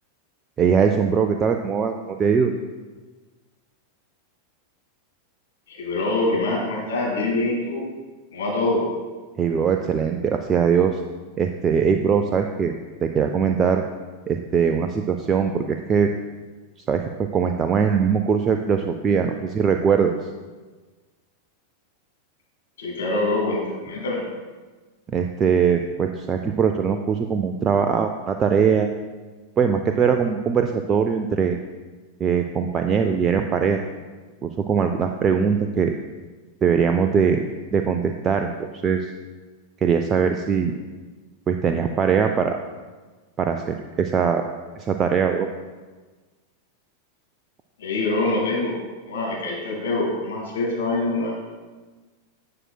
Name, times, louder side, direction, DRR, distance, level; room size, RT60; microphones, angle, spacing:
voice 1, 0.6-2.5 9.4-11.0 11.4-12.7 13.0-13.8 14.3-16.1 16.9-17.0 17.3-20.1 25.1-28.9 29.6-31.6 32.2-33.8 34.4-35.9 36.6-37.4 37.7-39.1 39.8-40.7 41.5-42.6 43.4-44.4 44.8-45.5, right 6 dB, 25° right, 6 dB, 0.4 m, -21 dB
voice 2, 5.7-7.8 8.3-8.8 22.8-24.2 47.8-48.8 49.1-51.3, left 2 dB, 65° left, -3 dB, 2.4 m, -24 dB
11.0 x 7.4 x 2.3 m, 1.3 s
figure-of-eight pair, 90°, 0 cm